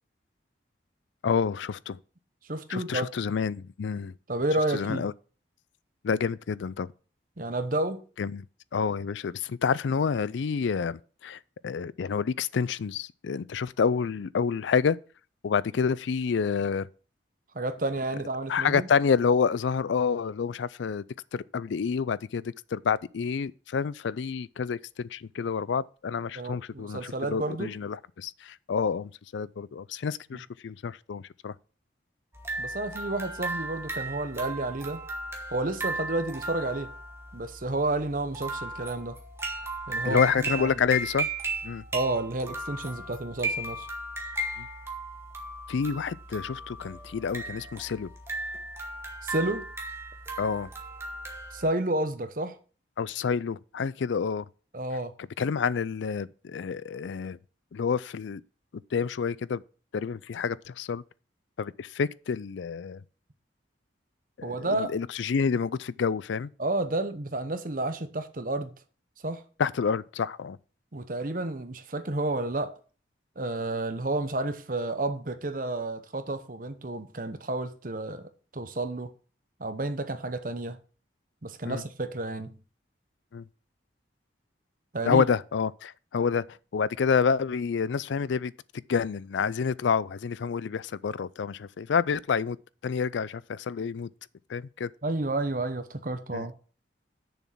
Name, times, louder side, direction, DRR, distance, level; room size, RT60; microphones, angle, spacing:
voice 1, 1.2-2.0 2.7-4.1 4.7-5.1 6.0-6.9 8.2-8.5 8.7-15.0 15.4-16.9 18.5-21.0 21.3-22.4 22.7-31.5 40.0-41.3 41.6-41.8 44.6-44.7 45.7-48.1 50.4-50.7 53.0-54.5 55.4-57.4 57.7-58.4 58.9-59.6 59.9-61.0 61.6-63.0 64.4-66.5 69.6-70.6 81.7-81.8 83.3-83.4 85.0-88.5 88.9-92.6 92.8-94.1 94.5-94.9 96.3-96.5, left 6 dB, 80° left, 0.4 m, -28 dB
voice 2, 2.5-3.1 4.3-5.0 7.4-8.0 17.5-18.9 26.4-27.7 30.3-30.4 32.6-35.0 35.5-36.9 37.3-39.2 39.9-40.2 40.6-40.7 41.9-43.9 49.2-49.7 51.5-52.6 54.7-55.1 64.4-64.9 66.6-68.7 69.2-69.4 70.9-72.8 73.4-79.1 79.6-80.8 81.4-82.6 84.9-85.2 95.0-96.5, right 2 dB, 45° right, 0.9 m, -31 dB
sound 1, 32.3-51.7, right 2 dB, 15° right, 1.6 m, -36 dB
6.9 x 6.3 x 7.3 m
head